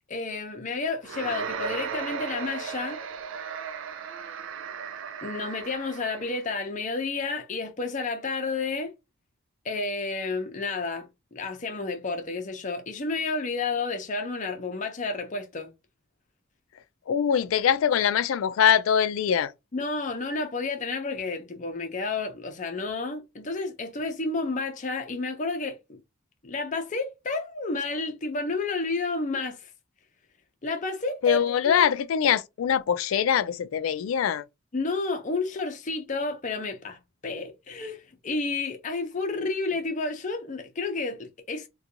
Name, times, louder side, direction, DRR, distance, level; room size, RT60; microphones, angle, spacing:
voice 1, 0.1-3.0 5.2-8.9 9.6-15.7 19.7-26.0 26.4-29.7 30.6-31.9 34.7-41.7, left 3 dB, 40° left, 0.6 m, -31 dB
sound 1, 1.0-6.4, right 6 dB, 75° right, 0.4 m, -36 dB
voice 2, 17.1-19.5 31.2-34.4, left 8 dB, 85° left, 0.3 m, -23 dB
2.5 x 2.3 x 2.7 m
head